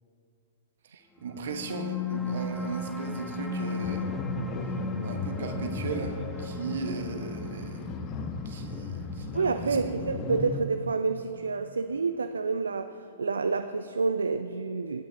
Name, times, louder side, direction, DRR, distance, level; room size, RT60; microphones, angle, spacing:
voice 1, 0.8-4.1 5.0-7.9 8.4-9.9, right 4 dB, 60° right, 5 dB, 1.1 m, -37 dB
sound 1, 1.3-12.3, left 3 dB, 5° left, 0.6 m, -37 dB
sound 2, 3.8-10.6, left 4 dB, 30° left, 0.8 m, -36 dB
voice 2, 9.3-15.1, right 4 dB, 75° right, 10 dB, 0.3 m, -29 dB
17.5 x 8.6 x 2.7 m, 2.5 s
figure-of-eight pair, 110°, 0 cm